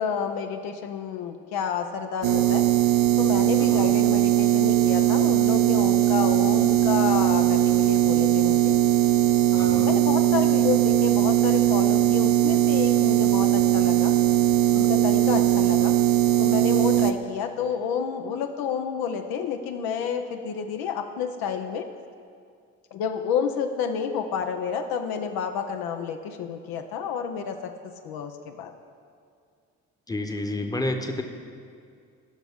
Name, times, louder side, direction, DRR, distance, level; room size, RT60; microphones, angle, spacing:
voice 1, 0.0-2.7 3.2-8.8 9.5-14.1 14.7-15.9 16.4-21.9 22.9-27.7 28.0-28.7, left 7 dB, 65° left, 6 dB, 0.7 m, -30 dB
sound 1, 2.2-17.1, right 13 dB, 55° right, 0.6 m, -20 dB
voice 2, 9.6-10.0 30.1-31.2, left 2 dB, 10° left, 5 dB, 1.0 m, -30 dB
15.0 x 6.0 x 3.6 m, 2.3 s
hypercardioid pair, 50°, 39 cm